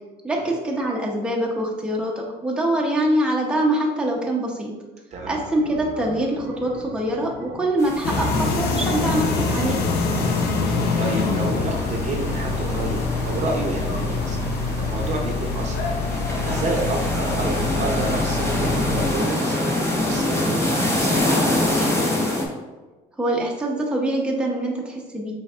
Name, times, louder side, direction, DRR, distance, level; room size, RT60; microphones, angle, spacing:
voice 1, 0.2-4.7 5.3-9.8 23.2-25.3, right 1 dB, 5° right, -2 dB, 0.7 m, -24 dB
sound 1, 5.1-20.7, right 3 dB, 90° right, 0.7 m, -40 dB
sound 2, 7.8-22.5, left 1 dB, 15° left, 1.0 m, -26 dB
sound 3, 8.0-19.0, left 3 dB, 70° left, 0.6 m, -25 dB
voice 2, 11.0-14.4 14.8-15.8 16.4-22.1, right 3 dB, 45° right, 0 dB, 0.7 m, -30 dB
5.1 x 3.5 x 2.4 m, 1.2 s
cardioid pair, 110°, 17 cm